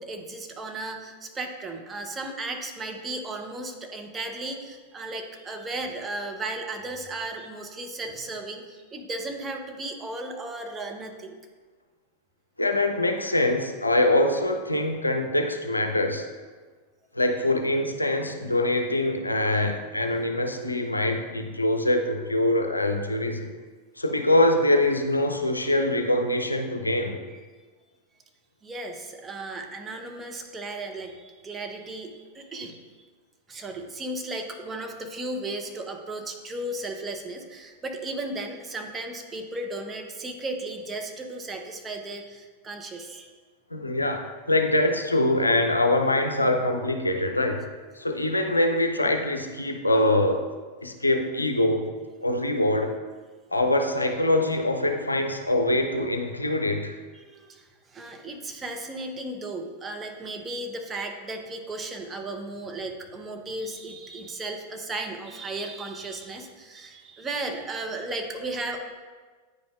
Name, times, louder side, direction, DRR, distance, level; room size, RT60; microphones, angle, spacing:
voice 1, 0.0-11.4 19.4-19.7 28.6-33.1 33.5-43.3 57.1-68.8, right 2 dB, 20° right, 3 dB, 0.7 m, -35 dB
voice 2, 12.6-16.3 17.1-23.5 24.0-27.2 43.7-47.6 48.0-50.4 50.8-51.9 52.2-52.9 53.5-56.9, left 1 dB, 85° left, 5 dB, 0.5 m, -24 dB
9.2 x 5.1 x 2.4 m, 1.4 s
figure-of-eight pair, 90°, 0 cm